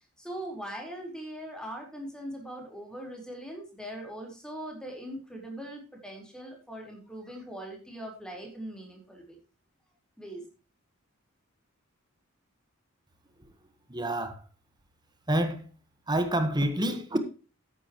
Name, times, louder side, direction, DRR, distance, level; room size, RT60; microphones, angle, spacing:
voice 1, 0.2-9.4 10.2-10.4, right 1 dB, 5° left, 4.4 m, -41 dB
voice 2, 13.9-14.4 15.3-15.7 16.1-17.2, right 1 dB, 20° right, 1.4 m, -28 dB
14.0 x 9.9 x 3.1 m
head